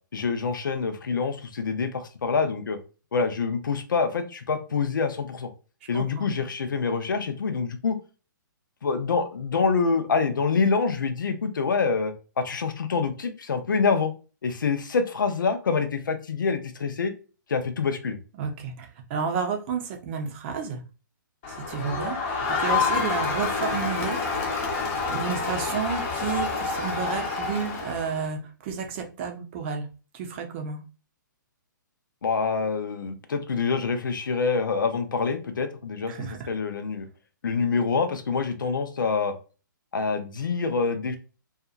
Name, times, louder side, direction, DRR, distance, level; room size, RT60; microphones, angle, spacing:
voice 1, 0.1-2.8 3.1-5.5 5.9-8.0 8.8-14.1 14.4-17.1 17.5-18.2 32.2-36.1 36.5-37.1 37.4-39.3 39.9-41.2, left 5 dB, 70° left, 8 dB, 0.5 m, -26 dB
voice 2, 5.9-6.3 18.4-20.8 21.6-24.2 25.1-29.8 30.1-30.8 36.1-36.4, right 6 dB, 35° right, 3 dB, 0.6 m, -31 dB
Crowd, 21.4-28.3, left 4 dB, 40° left, 0.9 m, -28 dB
2.7 x 2.4 x 2.4 m, 0.35 s
figure-of-eight pair, 130°, 11 cm